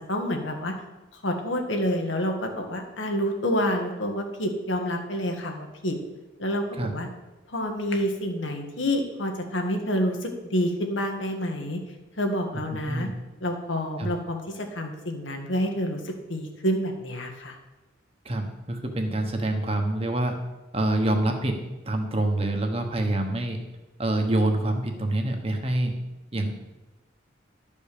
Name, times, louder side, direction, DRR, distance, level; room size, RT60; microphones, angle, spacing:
voice 1, 0.1-0.7 1.1-6.0 6.4-7.1 7.5-11.8 12.2-13.1 13.4-17.5, equal, 85° left, 3 dB, 1.6 m, -28 dB
voice 2, 18.2-20.3 20.7-21.6 21.8-23.6 24.0-25.9 26.3-26.5, right 1 dB, 30° right, 4 dB, 1.2 m, -26 dB
11.5 x 5.4 x 6.7 m, 1.1 s
head